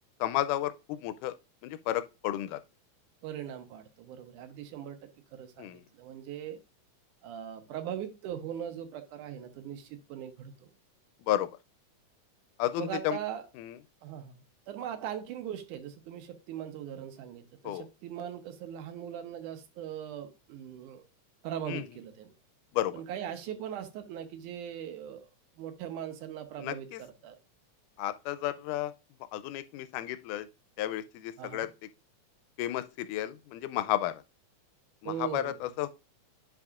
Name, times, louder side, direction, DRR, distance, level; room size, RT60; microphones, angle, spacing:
voice 1, 0.2-1.4 1.6-2.6 5.6-5.8 11.2-11.5 12.6-13.2 13.6-13.8 17.6-17.9 21.7-21.9 22.7-22.9 26.6-27.0 28.0-28.9 29.3-30.5 30.8-31.7 32.6-34.2 35.0-35.9, left 13 dB, 90° left, 2.1 m, -32 dB
voice 2, 3.2-5.0 5.3-6.6 7.2-10.7 12.8-13.5 14.0-14.4 14.7-21.0 21.4-22.3 22.9-25.3 25.6-27.4 31.4-31.7 35.0-35.6, right 9 dB, 80° right, 2.4 m, -40 dB
10.5 x 4.8 x 2.4 m
omnidirectional pair, 3.6 m